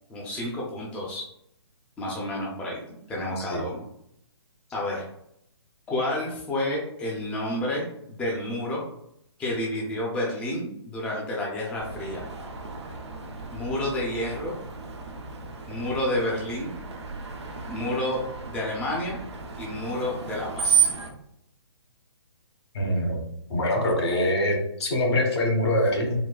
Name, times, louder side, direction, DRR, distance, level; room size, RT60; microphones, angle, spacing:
voice 1, 0.1-1.3 2.0-2.8 3.1-3.8 4.7-5.1 5.9-8.8 9.4-12.2 13.5-14.5 15.7-16.7 17.7-18.2 18.5-19.2 19.6-20.9, left 1 dB, 10° left, -3 dB, 0.4 m, -30 dB
voice 2, 3.4-3.7 22.7-23.2 23.5-26.1, left 1 dB, 65° left, 1 dB, 1.2 m, -24 dB
Screech, 11.8-21.1, right 6 dB, 70° right, 0.7 m, -32 dB
3.8 x 2.2 x 2.2 m, 0.74 s
hypercardioid pair, 140°, 15 cm